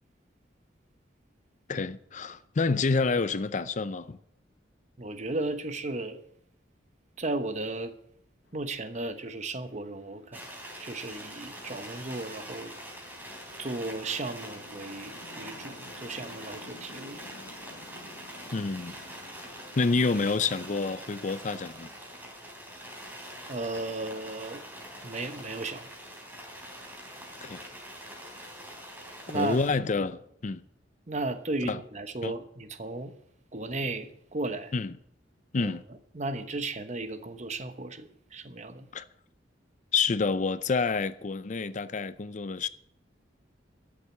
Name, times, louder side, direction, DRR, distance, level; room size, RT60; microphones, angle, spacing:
voice 1, 1.7-4.2 18.5-18.9 19.8-21.9 27.4-27.7 29.3-30.6 31.6-31.8 32.2-32.3 34.7-34.9 35.5-35.8 38.9-39.1 39.9-42.7, left 4 dB, 40° left, 0.5 m, -28 dB
voice 2, 5.0-6.2 7.2-7.9 8.5-10.5 10.8-12.7 13.6-17.2 23.5-24.6 25.0-25.9 29.3-29.6 31.1-33.1 33.5-34.7 35.5-35.7 36.1-38.9, right 2 dB, 40° right, 1.1 m, -35 dB
Chatter / Traffic noise roadway noise / Train, 8.5-21.9, left 2 dB, 80° left, 1.0 m, -54 dB
sound 1, 10.3-29.7, equal, 10° right, 3.5 m, -44 dB
13.0 x 7.3 x 8.3 m
head